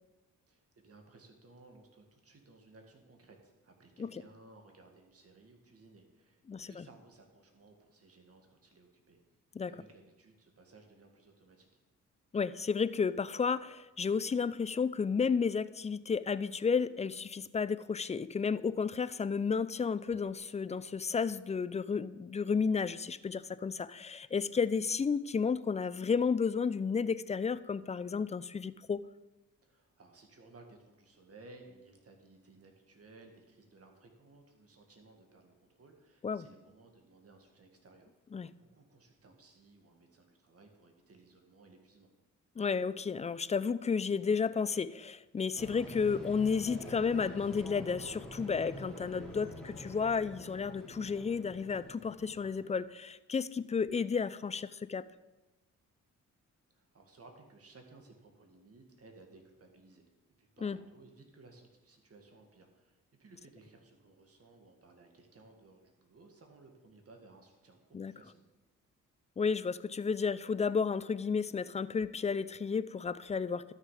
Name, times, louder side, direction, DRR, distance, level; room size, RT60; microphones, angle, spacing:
voice 1, 0.5-9.2 9.7-11.8 29.6-38.1 38.5-42.1 56.7-60.1 60.4-68.4, right 3 dB, 45° right, 3 dB, 2.0 m, -59 dB
voice 2, 6.5-6.9 9.5-9.7 12.3-29.1 36.2-36.4 38.3-38.5 42.6-55.1 60.6-60.8 67.9-68.1 69.4-73.7, left 5 dB, 20° left, 16 dB, 0.4 m, -32 dB
sound 1, 45.6-52.7, left 1 dB, 5° left, 2.6 m, -47 dB
12.0 x 6.5 x 5.0 m, 1.1 s
cardioid pair, 65°, 32 cm